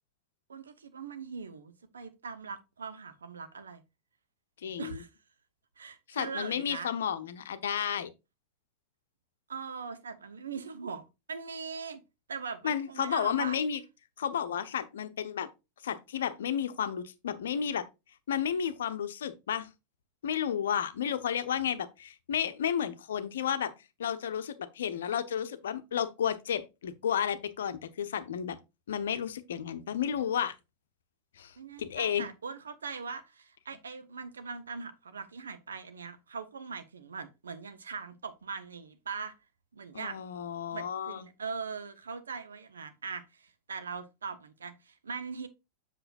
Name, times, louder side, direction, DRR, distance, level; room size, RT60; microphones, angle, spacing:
voice 1, 0.5-3.8 4.8-5.1 5.8-6.9 9.5-12.0 12.3-13.6 31.6-39.3 39.7-40.2 40.7-45.5, right 5 dB, 70° right, 0.9 m, -41 dB
voice 2, 4.6-5.0 6.1-8.1 12.6-13.8 14.2-15.5 15.8-17.9 18.3-19.7 20.2-23.7 24.0-28.6 28.9-30.5 31.4-32.3 39.9-41.3, left 8 dB, 60° left, 0.8 m, -32 dB
7.8 x 6.4 x 2.5 m
figure-of-eight pair, 90°, 0 cm